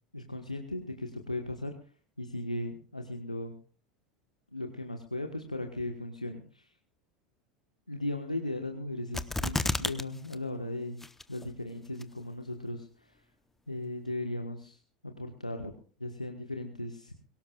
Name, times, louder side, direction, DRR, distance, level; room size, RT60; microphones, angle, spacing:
voice 1, 0.1-1.7 2.2-3.5 4.5-6.7 7.9-11.0 11.3-13.2 13.7-15.7 16.0-17.1, left 1 dB, 90° left, 4 dB, 1.4 m, -37 dB
sound 1, 9.1-10.0 10.3-10.4 11.0-11.5 12.0-12.1, left 2 dB, 5° left, 1.1 m, -30 dB
23.0 x 18.5 x 2.4 m, 0.39 s
figure-of-eight pair, 80°, 4 cm